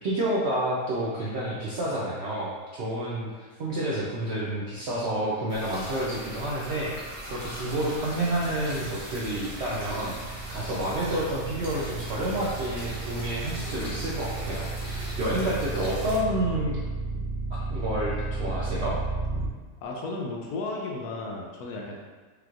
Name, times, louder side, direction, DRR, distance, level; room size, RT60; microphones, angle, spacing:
voice 1, 0.0-17.2 17.5-19.0, right 1 dB, 70° right, -6 dB, 0.6 m, -29 dB
sound 1, 5.5-16.2, equal, 25° right, 0.6 m, -40 dB
sound 2, 6.6-19.5, right 3 dB, 90° right, 1.6 m, -34 dB
voice 2, 19.8-22.0, left 2 dB, 70° left, -1 dB, 1.1 m, -34 dB
5.0 x 3.0 x 2.4 m, 1.4 s
omnidirectional pair, 1.8 m